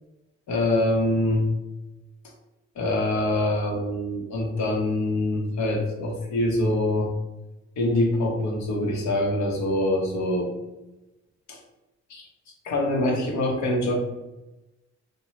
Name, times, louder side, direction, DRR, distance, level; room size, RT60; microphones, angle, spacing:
voice 1, 0.5-1.5 2.8-7.1 7.8-10.5 11.5-11.6 12.1-12.2 12.6-13.9, left 1 dB, 65° left, 0 dB, 0.9 m, -24 dB
2.8 x 2.2 x 3.0 m, 1.0 s
cardioid pair, 90°, 30 cm